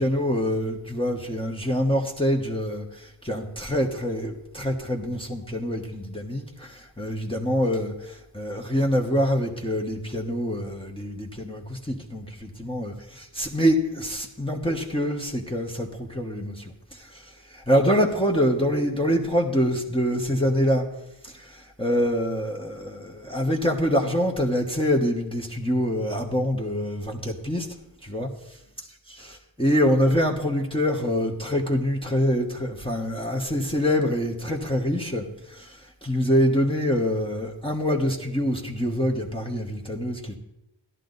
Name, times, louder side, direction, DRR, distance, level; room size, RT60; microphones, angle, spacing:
voice 1, 0.0-20.9 21.2-27.7 28.0-28.3 29.1-40.4, equal, 10° left, -1 dB, 1.3 m, -25 dB
13.5 x 11.0 x 4.0 m, 0.88 s
wide cardioid pair, 40°, 50 cm